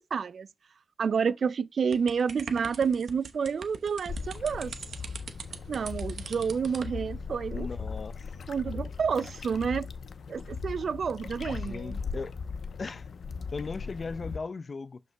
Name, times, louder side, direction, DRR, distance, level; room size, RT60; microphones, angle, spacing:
voice 1, 0.1-0.5 1.0-4.7 5.7-7.7 8.5-9.9 10.3-12.0, right 6 dB, 60° right, 0.3 m, -29 dB
sound 1, 1.9-7.0, right 5 dB, 80° right, 0.9 m, -43 dB
sound 2, 4.1-14.4, left 5 dB, 70° left, 0.7 m, -38 dB
voice 2, 7.5-8.3 11.5-12.4 12.8-13.1 13.5-15.0, left 4 dB, 40° left, 0.4 m, -37 dB
12.0 x 5.3 x 2.2 m
wide cardioid pair, 150°, 0 cm